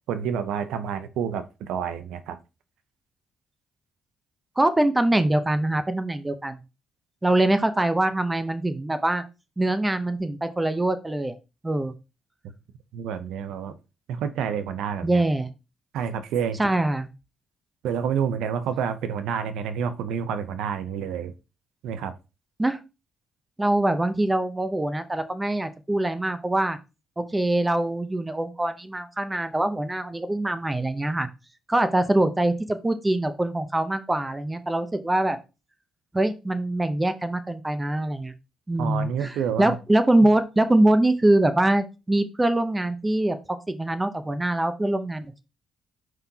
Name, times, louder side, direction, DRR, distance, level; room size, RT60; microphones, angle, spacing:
voice 1, 0.1-2.4 12.9-13.7 14.1-15.2 15.9-16.6 17.8-21.3 21.8-22.1 38.8-39.8, right 7 dB, 85° right, 0.7 m, -28 dB
voice 2, 4.6-6.6 7.2-9.2 9.6-11.3 11.6-11.9 15.0-15.5 16.6-17.1 22.6-22.8 23.6-26.8 27.2-31.3 31.7-35.4 36.1-38.3 38.7-45.4, right 1 dB, 15° right, 0.8 m, -23 dB
6.1 x 5.3 x 2.9 m
cardioid pair, 90°, 0 cm